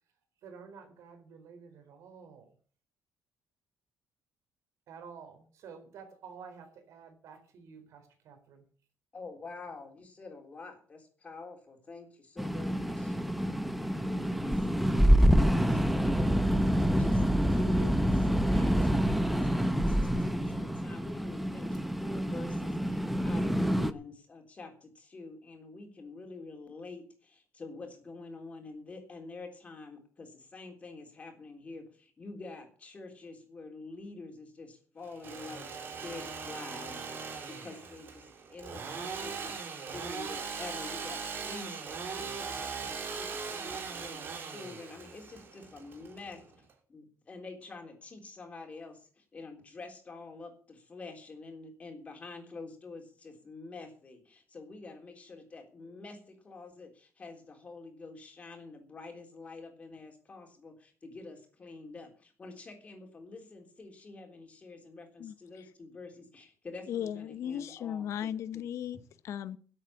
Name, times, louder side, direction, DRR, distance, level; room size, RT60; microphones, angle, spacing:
voice 1, 0.4-2.6 4.9-8.7, right 6 dB, 80° right, 6 dB, 4.2 m, -50 dB
voice 2, 9.1-16.3 16.8-35.7 36.0-38.2 38.5-39.6 39.9-68.6, left 3 dB, 25° left, 3 dB, 3.5 m, -47 dB
sound 1, 12.4-23.9, equal, ahead, 0.7 m, -27 dB
Engine / Sawing, 35.0-46.7, right 5 dB, 45° right, 2.9 m, -40 dB
voice 3, 66.9-69.6, left 9 dB, 70° left, 14 dB, 1.0 m, -36 dB
12.5 x 8.1 x 8.5 m, 0.43 s
cardioid pair, 170°, 5 cm